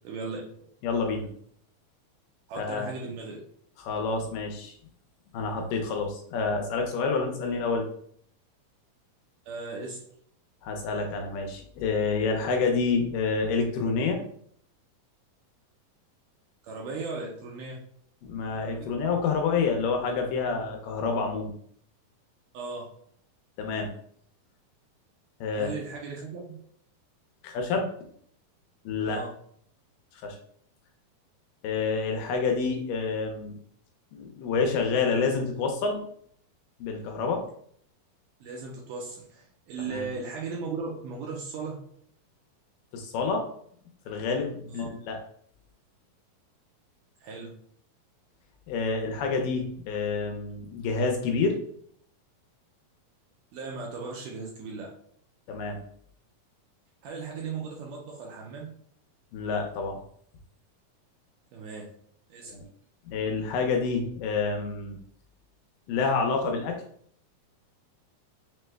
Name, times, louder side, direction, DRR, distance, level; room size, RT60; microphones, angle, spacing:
voice 1, 0.0-0.4 2.5-3.4 9.5-10.0 16.6-17.8 18.8-18.9 22.5-22.9 25.5-26.6 29.1-29.3 38.4-41.8 44.8-44.9 47.2-47.6 53.5-54.9 57.0-58.7 61.5-61.9 62.3-62.5, right 4 dB, 80° right, -1 dB, 2.0 m, -37 dB
voice 2, 0.8-1.3 2.6-2.9 3.8-4.7 5.3-7.9 10.6-14.2 18.2-21.5 23.6-23.9 25.4-25.8 27.4-27.9 28.9-29.2 30.1-30.4 31.6-33.5 34.1-36.1 36.8-37.4 39.9-40.1 42.9-43.4 44.1-45.2 48.7-51.6 55.5-55.8 59.3-60.0 62.5-62.6 63.1-65.0 65.9-66.8, left 4 dB, 80° left, 3 dB, 2.1 m, -28 dB
6.1 x 2.1 x 3.2 m, 0.64 s
omnidirectional pair, 4.2 m